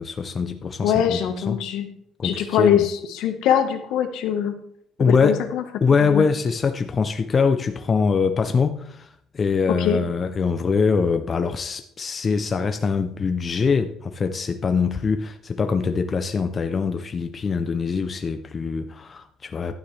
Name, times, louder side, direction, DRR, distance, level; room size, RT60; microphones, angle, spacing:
voice 1, 0.0-1.6 2.2-2.8 5.0-5.4 5.8-9.1 9.3-19.8, left 5 dB, 25° left, 8 dB, 0.5 m, -23 dB
voice 2, 0.8-1.9 2.2-4.5 5.1-5.6 6.0-6.3 9.8-10.0, left 9 dB, 75° left, 7 dB, 1.3 m, -22 dB
11.5 x 9.6 x 3.3 m, 0.70 s
cardioid pair, 180°, 0 cm